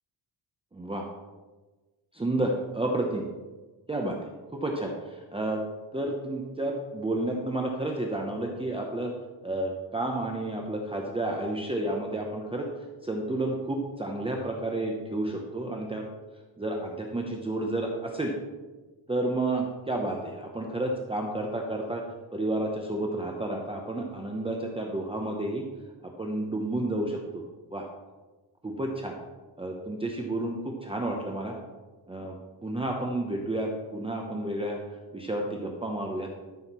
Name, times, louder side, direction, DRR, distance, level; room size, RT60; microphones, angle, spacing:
voice 1, 0.7-1.0 2.1-3.3 3.9-5.6 5.9-9.1 9.4-12.7 13.0-16.0 16.6-18.3 19.1-22.0 22.3-25.6 26.2-27.4 27.7-27.8 28.6-29.2 29.6-31.6 32.1-36.3, right 1 dB, 10° right, 0 dB, 0.7 m, -31 dB
13.0 x 6.4 x 4.3 m, 1.3 s
wide cardioid pair, 180°, 46 cm